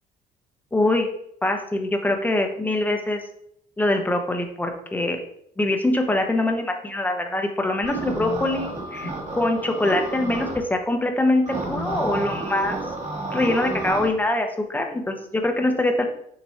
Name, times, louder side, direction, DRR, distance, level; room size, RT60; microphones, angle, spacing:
voice 1, 0.7-1.1 1.4-3.2 3.8-5.2 5.6-12.8 13.3-16.0, left 2 dB, 10° left, 4 dB, 0.9 m, -23 dB
sound 1, 7.8-10.6 11.4-14.1, right 2 dB, 45° right, 2.3 m, -30 dB
7.1 x 3.0 x 4.4 m, 0.71 s
cardioid pair, 110°, 17 cm